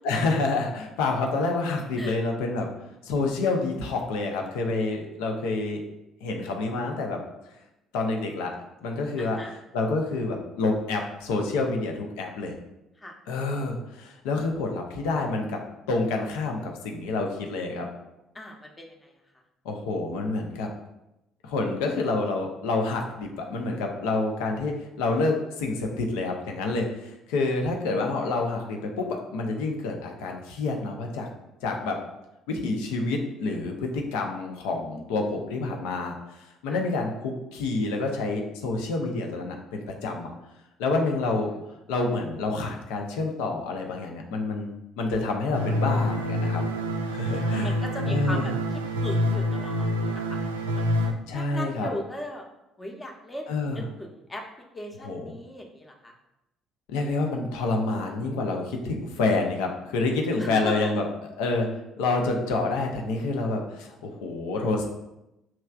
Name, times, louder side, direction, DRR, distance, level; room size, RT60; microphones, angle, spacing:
voice 1, 0.0-2.7 3.0-5.8 6.2-7.2 7.9-8.5 8.8-12.5 13.3-15.6 15.9-17.9 19.6-20.7 21.4-31.3 31.6-32.0 32.5-40.3 40.8-41.5 41.9-46.6 47.1-47.8 48.0-48.5 51.3-51.9 53.5-53.9 55.0-55.4 56.9-61.7 62.0-64.9, left 3 dB, 65° left, 2 dB, 0.6 m, -28 dB
voice 2, 9.2-9.5 13.0-13.1 18.3-18.9 36.7-36.8 41.5-41.6 47.0-48.5 49.0-50.7 51.0-52.4 52.8-54.4 54.7-56.1 60.4-60.9, left 1 dB, 20° left, 1 dB, 0.8 m, -38 dB
sound 1, 45.5-51.1, left 1 dB, 80° right, 0.3 m, -27 dB
5.8 x 3.2 x 2.3 m, 0.92 s
figure-of-eight pair, 50°, 0 cm